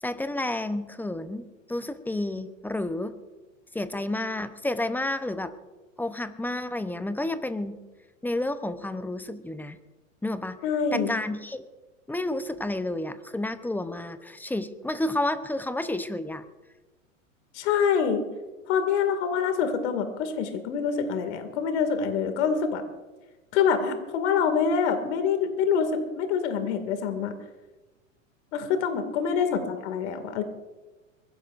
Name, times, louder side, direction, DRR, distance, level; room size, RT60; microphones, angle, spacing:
voice 1, 0.0-1.4 1.7-3.1 3.7-5.5 6.0-7.8 8.2-9.8 10.2-10.6 10.9-11.6 12.1-16.4 29.4-29.7, left 1 dB, 5° left, 11 dB, 0.7 m, -30 dB
voice 2, 10.6-11.1 17.5-18.3 18.7-22.8 23.5-27.3 28.5-30.4, left 6 dB, 60° left, 8 dB, 2.3 m, -25 dB
23.0 x 16.0 x 2.5 m, 1.2 s
hypercardioid pair, 105°, 39 cm